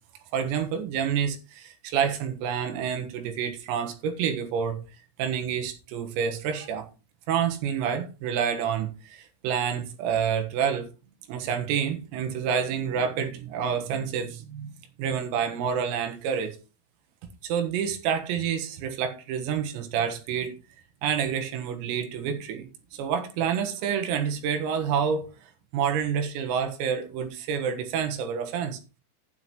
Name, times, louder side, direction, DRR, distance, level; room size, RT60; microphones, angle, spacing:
voice 1, 0.3-4.8 5.2-6.9 7.3-10.9 11.3-14.7 15.0-16.6 17.4-20.5 21.0-25.3 25.7-28.8, right 7 dB, 85° right, 4.2 m, -28 dB
11.5 x 10.0 x 3.1 m
omnidirectional pair, 6.0 m